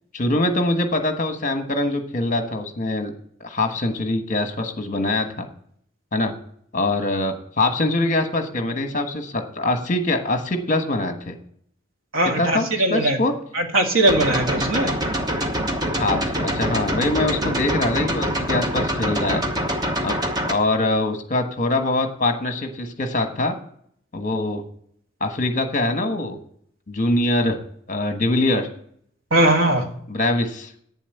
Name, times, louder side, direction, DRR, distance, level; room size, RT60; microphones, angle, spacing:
voice 1, 0.1-3.1 3.4-5.5 6.1-6.3 6.7-11.4 12.2-13.3 16.0-19.4 20.0-20.2 20.4-23.6 24.1-24.6 25.2-26.4 26.9-27.6 27.9-28.7 30.1-30.7, left 2 dB, 40° left, 6 dB, 1.2 m, -23 dB
voice 2, 12.1-13.2 13.6-14.9 29.3-29.9, right 1 dB, 85° right, 4 dB, 1.7 m, -19 dB
sound 1, 14.1-20.5, equal, 20° right, 1.0 m, -25 dB
8.9 x 7.2 x 8.1 m, 0.66 s
head